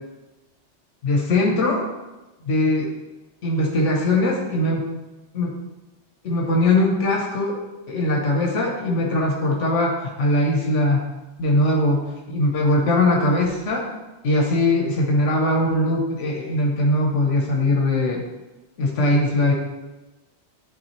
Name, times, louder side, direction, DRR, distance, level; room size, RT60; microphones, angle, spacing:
voice 1, 1.0-1.9 2.5-2.9 3.4-4.9 5.3-5.6 6.2-7.6 7.9-11.0 11.4-13.9 14.2-18.2 18.8-19.5, left 1 dB, 85° left, 0 dB, 1.3 m, -21 dB
10.5 x 3.6 x 3.1 m, 1.1 s
omnidirectional pair, 1.2 m